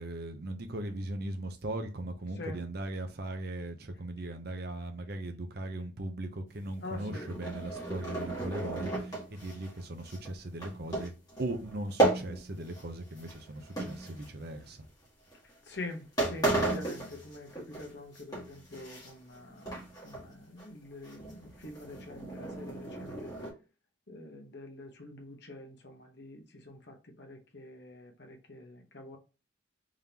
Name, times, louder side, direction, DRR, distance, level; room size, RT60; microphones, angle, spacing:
voice 1, 0.0-11.1 11.4-14.8, right 1 dB, 50° right, 0.7 m, -38 dB
voice 2, 6.8-7.3 15.7-23.3 24.1-29.2, left 2 dB, 55° left, 1.0 m, -45 dB
sound 1, 6.8-12.9 13.2-14.6 15.3-15.5 15.9-16.0 16.2-17.9 18.1-19.4 19.7-20.3 20.6-20.7 21.0-23.5, right 2 dB, 20° left, 1.6 m, -34 dB
3.7 x 3.5 x 2.9 m
head